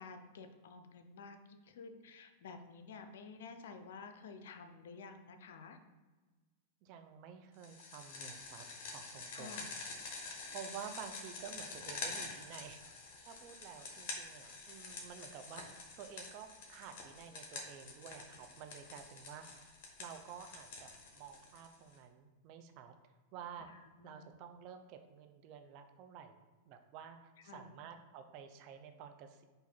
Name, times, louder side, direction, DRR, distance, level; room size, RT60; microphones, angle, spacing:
voice 1, 0.0-5.8 9.3-9.7 23.6-24.3 27.5-27.7, left 4 dB, 75° left, 7 dB, 0.5 m, -51 dB
voice 2, 6.8-8.6 8.9-9.7 10.5-19.7 20.0-22.9 23.3-23.7 24.0-26.3 26.7-29.4, right 8 dB, 50° right, 7 dB, 0.5 m, -51 dB
sound 1, 7.6-21.9, left 3 dB, 60° left, 1.2 m, -47 dB
4.7 x 2.6 x 4.3 m, 1.3 s
hypercardioid pair, 115°, 0 cm